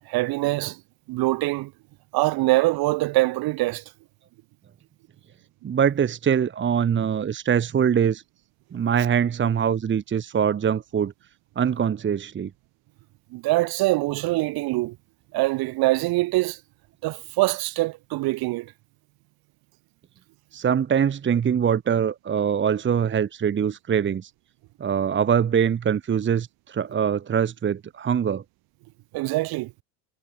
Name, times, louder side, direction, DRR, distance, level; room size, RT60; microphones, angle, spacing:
voice 1, 0.1-0.8 1.1-1.7 2.1-3.8 13.3-15.0 15.3-16.6 17.0-18.7 29.1-29.7, right 20 dB, 55° right, 3.2 m, -24 dB
voice 2, 5.6-8.2 8.7-11.1 11.5-12.5 20.5-24.3 24.8-28.4, right 8 dB, 25° right, 1.5 m, -23 dB
hypercardioid pair, 75°, 44 cm